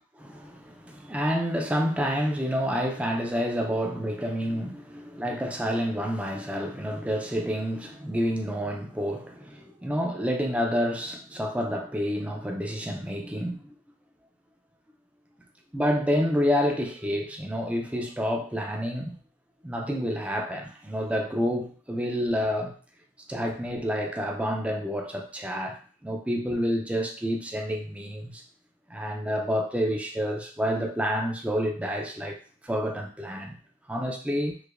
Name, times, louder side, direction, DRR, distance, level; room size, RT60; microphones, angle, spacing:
voice 1, 0.2-13.7 15.7-19.2 19.6-22.8 23.3-28.4 28.9-32.4 32.6-33.5 33.9-34.6, equal, 5° right, 0.4 m, -29 dB
4.7 x 2.1 x 2.4 m
head